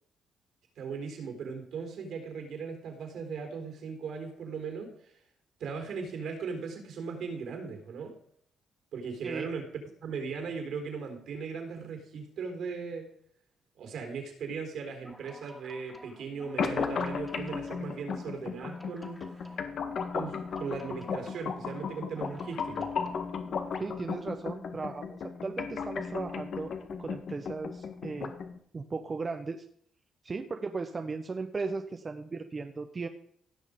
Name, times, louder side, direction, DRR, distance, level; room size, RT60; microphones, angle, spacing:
voice 1, 0.8-5.1 5.6-8.1 8.9-9.7 10.0-13.1 13.8-19.2 20.1-22.9, right 5 dB, 70° right, 5 dB, 4.0 m, -38 dB
sound 1, 14.9-23.8, equal, ahead, 2.3 m, -52 dB
sound 2, 16.6-28.6, left 6 dB, 60° left, 1.6 m, -35 dB
voice 2, 23.8-26.7 27.0-28.3 28.7-29.6 30.2-33.1, right 4 dB, 35° right, 6 dB, 1.0 m, -36 dB
17.0 x 6.4 x 5.1 m, 0.65 s
cardioid pair, 90°, 0 cm